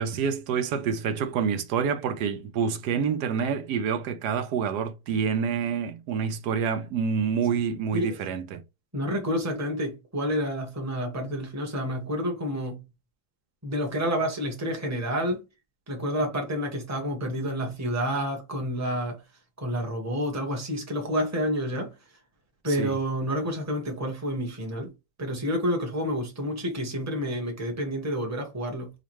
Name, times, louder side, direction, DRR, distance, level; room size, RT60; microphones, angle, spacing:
voice 1, 0.0-8.6 22.7-23.0, right 6 dB, 80° right, 1.2 m, -27 dB
voice 2, 8.9-12.8 13.6-15.4 15.9-19.2 19.6-21.9 22.6-24.9 25.2-28.9, equal, 10° right, 1.1 m, -29 dB
5.2 x 2.4 x 3.1 m
omnidirectional pair, 1.7 m